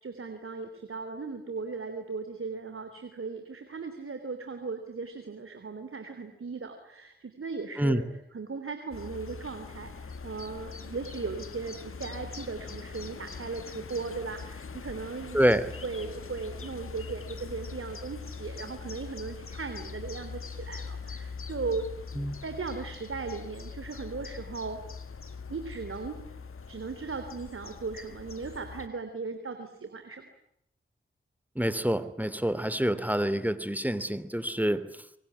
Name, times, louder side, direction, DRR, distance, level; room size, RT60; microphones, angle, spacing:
voice 1, 0.0-8.1 8.3-15.5 15.8-21.9 22.4-24.8 25.5-26.2 26.7-30.3, right 4 dB, 85° right, 8 dB, 3.2 m, -37 dB
sound 1, 8.9-28.9, left 5 dB, 85° left, 1.9 m, -42 dB
voice 2, 31.5-34.8, equal, 10° right, 14 dB, 3.0 m, -27 dB
25.5 x 23.0 x 9.9 m, 0.75 s
cardioid pair, 40°, 21 cm